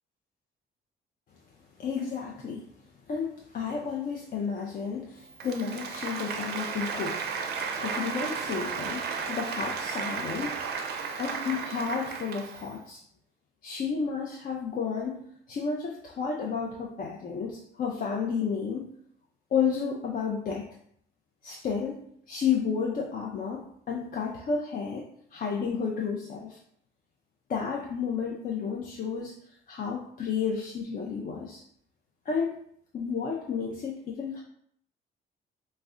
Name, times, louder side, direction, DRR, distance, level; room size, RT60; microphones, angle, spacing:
voice 1, 1.8-2.7 3.1-7.2 7.8-10.6 11.2-13.0 13.6-18.9 19.5-20.7 21.4-25.1 25.3-26.6 27.5-29.3 29.7-31.6 32.3-32.5 32.9-34.4, left 6 dB, 45° left, -1 dB, 0.4 m, -31 dB
Applause, 5.3-12.7, right 5 dB, 55° right, 0.4 m, -34 dB
2.3 x 2.1 x 3.6 m, 0.66 s
cardioid pair, 90°, 20 cm